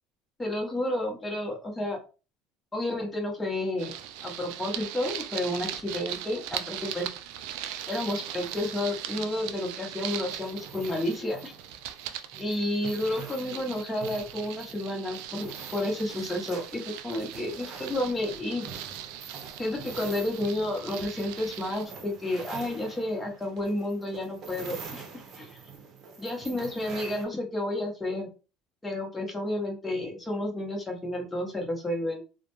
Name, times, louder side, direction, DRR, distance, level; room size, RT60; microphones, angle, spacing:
voice 1, 0.4-2.0 2.7-3.9 4.2-7.1 7.9-11.5 12.4-18.7 19.6-25.0 25.3-25.5 26.2-28.3 28.8-32.2, left 1 dB, 10° left, 0 dB, 1.0 m, -31 dB
sound 1, 3.8-21.9, right 11 dB, 75° right, 0.3 m, -40 dB
sound 2, 7.3-27.3, right 5 dB, 45° right, 0.8 m, -46 dB
2.4 x 2.1 x 3.0 m, 0.33 s
supercardioid pair, 100°, 0 cm